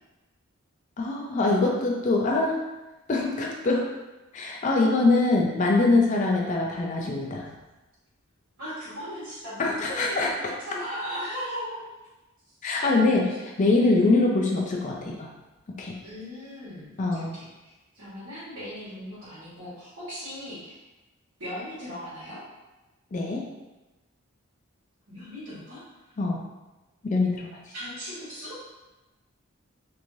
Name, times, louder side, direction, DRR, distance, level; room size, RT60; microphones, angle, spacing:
voice 1, 1.0-2.6 3.1-3.8 4.3-7.4 9.6-10.3 12.6-15.3 15.8-16.0 17.0-17.3 23.1-23.4 26.2-26.4 27.0-27.5, left 3 dB, 35° left, -1 dB, 0.4 m, -23 dB
voice 2, 8.6-11.8 12.6-12.9 16.0-17.5 17.9-20.8 21.4-22.4 25.1-26.1 27.7-28.6, equal, 90° right, -12 dB, 1.3 m, -38 dB
3.1 x 2.6 x 2.6 m, 1.1 s
head